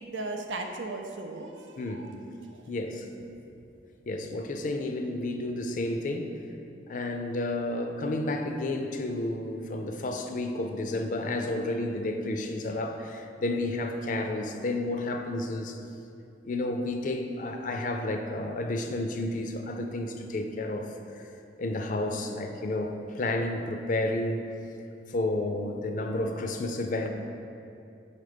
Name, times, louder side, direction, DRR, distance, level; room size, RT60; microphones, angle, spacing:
voice 1, 0.0-2.2 2.5-2.6, right 2 dB, 85° right, 3 dB, 0.6 m, -37 dB
voice 2, 1.8-2.1 2.7-3.1 4.1-6.4 6.9-15.8 16.4-21.3 21.6-24.4 25.1-27.1, left 2 dB, 45° left, 5 dB, 0.4 m, -31 dB
5.1 x 4.1 x 5.0 m, 2.7 s
head